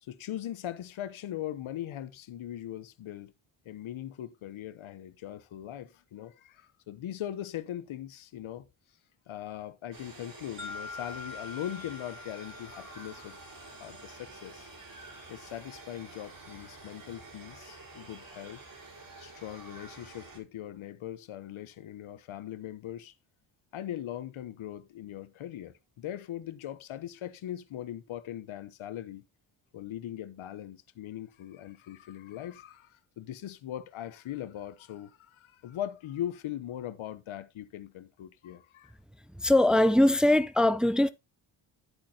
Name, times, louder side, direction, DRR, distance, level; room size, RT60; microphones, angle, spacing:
voice 1, 0.0-3.3 3.6-8.7 9.3-13.4 13.8-14.7 15.3-18.6 19.2-23.1 23.7-29.2 29.7-38.9, left 11 dB, 70° left, 1.0 m, -40 dB
sound 1, 9.9-20.4, right 2 dB, 40° right, 4.8 m, -49 dB
sound 2, 10.6-14.6, left 4 dB, 20° right, 3.9 m, -45 dB
voice 2, 39.4-41.1, left 1 dB, ahead, 0.6 m, -22 dB
10.5 x 8.6 x 2.8 m
supercardioid pair, 55°, 49 cm